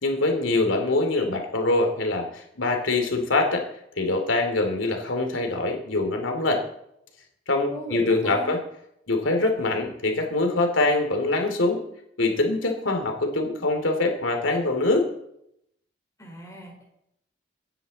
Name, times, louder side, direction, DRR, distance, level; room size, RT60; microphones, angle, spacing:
voice 1, 0.0-3.6 4.0-6.6 7.5-8.6 9.1-11.8 12.2-15.1, left 2 dB, 90° left, 4 dB, 2.6 m, -24 dB
voice 2, 7.7-8.6 16.2-16.8, right 1 dB, 15° left, 0 dB, 3.9 m, -38 dB
24.5 x 9.9 x 4.1 m, 0.78 s
head